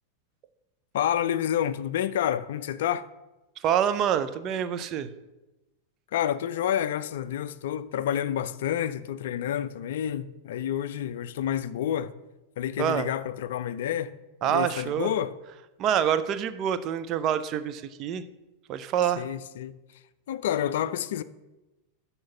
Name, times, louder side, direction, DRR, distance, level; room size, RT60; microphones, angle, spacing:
voice 1, 0.9-3.1 6.1-12.1 12.6-14.1 14.4-15.3 19.2-19.7 20.3-21.2, left 10 dB, 55° left, 0.4 m, -29 dB
voice 2, 3.6-5.1 12.8-13.1 14.4-15.1 15.8-18.2 18.7-19.2, right 9 dB, 35° right, 0.5 m, -26 dB
6.3 x 5.5 x 7.0 m
figure-of-eight pair, 90°, 0 cm